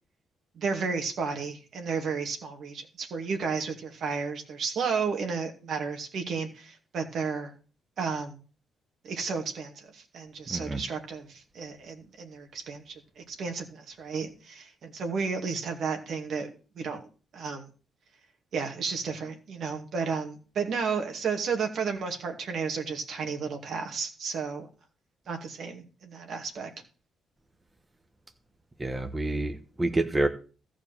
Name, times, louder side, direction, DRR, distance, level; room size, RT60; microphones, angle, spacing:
voice 1, 0.6-7.5 8.0-8.4 9.0-17.1 17.3-17.7 18.5-24.7 25.3-26.7, right 5 dB, 65° right, 3 dB, 2.4 m, -33 dB
voice 2, 10.5-10.8 28.8-30.3, right 2 dB, 20° right, 6 dB, 1.2 m, -28 dB
14.0 x 5.0 x 7.4 m, 0.37 s
cardioid pair, 90°, 0 cm